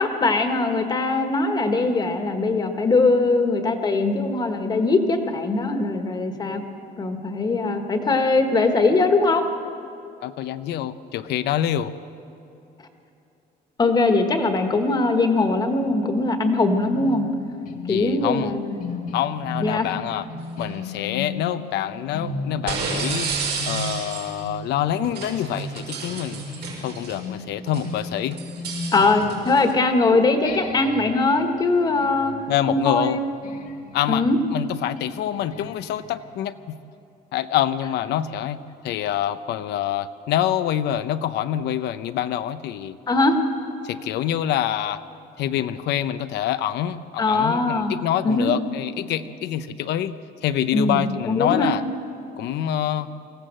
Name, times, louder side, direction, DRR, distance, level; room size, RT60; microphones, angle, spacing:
voice 1, 0.0-6.6 7.0-9.5 13.8-17.3 17.9-18.8 19.6-19.9 28.9-32.3 32.7-33.2 34.1-34.4 43.1-43.4 47.2-48.0 48.2-48.5 50.7-51.7, left 3 dB, 25° left, 6 dB, 1.5 m, -21 dB
voice 2, 10.2-11.9 17.9-18.5 19.1-20.3 20.6-23.3 23.7-26.4 26.8-28.4 32.5-33.2 33.9-34.2 34.5-36.8 37.3-43.0 43.8-45.0 45.4-50.2 50.4-51.8 52.4-53.1, left 11 dB, 90° left, 11 dB, 0.7 m, -26 dB
sound 1, 16.9-30.0 30.4-36.3, left 2 dB, 55° left, 2.0 m, -36 dB
sound 2, 20.5-20.8 22.7-24.4 25.0-27.3 27.7-29.7, right 5 dB, 85° right, 6.0 m, -32 dB
24.5 x 16.0 x 7.6 m, 2.8 s
cardioid pair, 170°, 17 cm